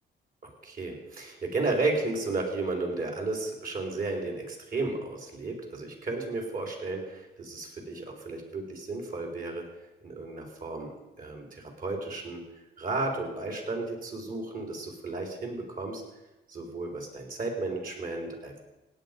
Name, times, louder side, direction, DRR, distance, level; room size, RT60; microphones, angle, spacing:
voice 1, 0.4-9.7 10.0-12.4 12.8-16.0 16.5-18.6, right 3 dB, 45° right, 1 dB, 4.3 m, -33 dB
17.5 x 9.3 x 5.3 m, 1.0 s
cardioid pair, 90°, 20 cm